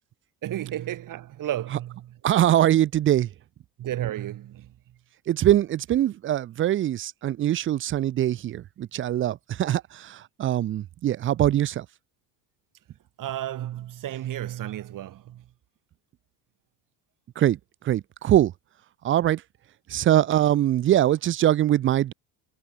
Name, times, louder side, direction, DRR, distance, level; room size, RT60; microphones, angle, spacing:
voice 1, 0.4-2.2 3.8-4.7 13.2-15.5, right 12 dB, 50° right, 1.5 m, -33 dB
voice 2, 2.2-3.3 5.3-11.9 17.4-17.6 17.8-18.5 19.0-19.4 19.9-22.1, right 12 dB, 30° right, 0.4 m, -22 dB
cardioid pair, 110°, 42 cm